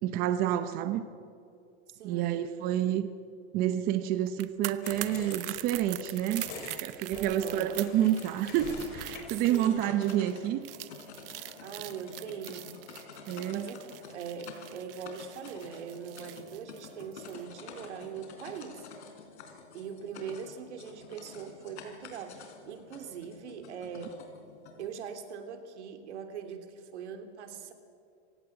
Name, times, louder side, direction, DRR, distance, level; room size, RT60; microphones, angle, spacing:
voice 1, 0.0-1.0 2.0-3.1 3.5-6.5 6.8-10.6 13.3-13.6, right 11 dB, 25° right, 10 dB, 0.8 m, -29 dB
voice 2, 1.9-2.4 7.1-7.8 9.5-9.8 11.6-12.7 13.5-13.8 14.1-18.9 19.7-24.2 24.8-27.7, right 7 dB, 80° right, 6 dB, 3.2 m, -41 dB
sound 1, 4.3-17.4 17.7-17.9, right 17 dB, 55° right, 1.0 m, -43 dB
sound 2, 4.8-9.5, left 4 dB, 30° left, 4.5 m, -46 dB
sound 3, 7.9-24.9, left 5 dB, 75° left, 4.5 m, -49 dB
26.0 x 17.0 x 8.0 m, 2.4 s
supercardioid pair, 160°, 34 cm